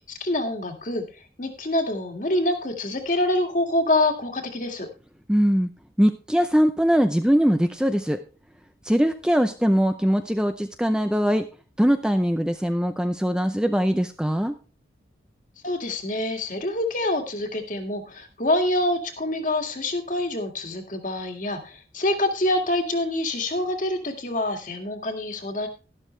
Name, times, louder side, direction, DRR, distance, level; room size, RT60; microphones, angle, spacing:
voice 1, 0.1-4.9 15.6-25.7, left 1 dB, 45° left, 4 dB, 2.0 m, -26 dB
voice 2, 5.3-5.7 6.0-8.2 8.8-11.5 11.8-14.6, equal, 5° right, 8 dB, 0.5 m, -21 dB
12.0 x 12.0 x 3.2 m, 0.33 s
head